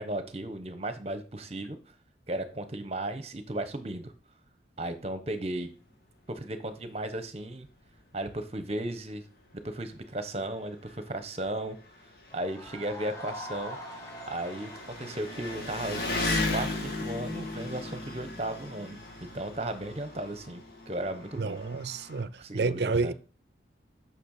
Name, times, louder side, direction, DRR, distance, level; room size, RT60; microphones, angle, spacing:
voice 1, 0.0-1.8 2.3-4.1 4.8-5.7 6.3-7.7 8.1-9.2 9.6-11.8 12.3-13.8 14.3-16.0 16.3-19.0 19.3-21.8 22.4-23.1, right 1 dB, 35° right, 1.1 m, -35 dB
Engine, 7.7-7.8 8.1-8.2 9.2-9.3 9.5-22.2, left 2 dB, 55° left, 2.1 m, -37 dB
sound 1, 12.3-17.0, left 1 dB, 15° left, 1.8 m, -44 dB
voice 2, 21.4-23.1, right 4 dB, 65° right, 0.5 m, -30 dB
6.6 x 6.2 x 6.6 m
head